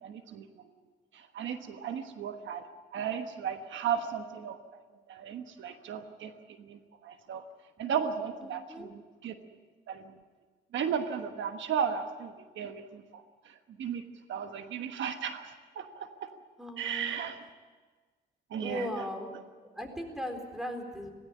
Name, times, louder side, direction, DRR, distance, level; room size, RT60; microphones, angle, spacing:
voice 1, 0.0-0.4 1.3-2.6 2.9-4.6 5.1-6.3 6.7-7.4 7.8-8.9 9.2-9.3 9.9-10.0 10.7-13.2 13.8-14.0 14.3-15.9 16.2-16.3 16.8-17.3 18.5-18.9, right 7 dB, 70° right, 7 dB, 1.3 m, -34 dB
voice 2, 8.4-8.9 16.6-17.1 18.6-19.3 19.6-21.1, equal, ahead, 4 dB, 4.0 m, -38 dB
17.5 x 17.0 x 10.0 m, 1.4 s
cardioid pair, 90°, 20 cm